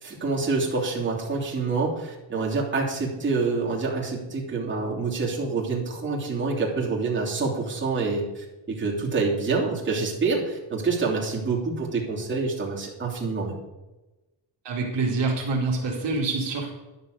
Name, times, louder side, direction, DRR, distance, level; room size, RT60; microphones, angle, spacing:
voice 1, 0.0-13.6, right 4 dB, 25° right, -4 dB, 3.0 m, -27 dB
voice 2, 14.6-16.7, right 3 dB, 65° right, -1 dB, 2.6 m, -26 dB
11.5 x 6.7 x 6.6 m, 1.1 s
cardioid pair, 125°, 45 cm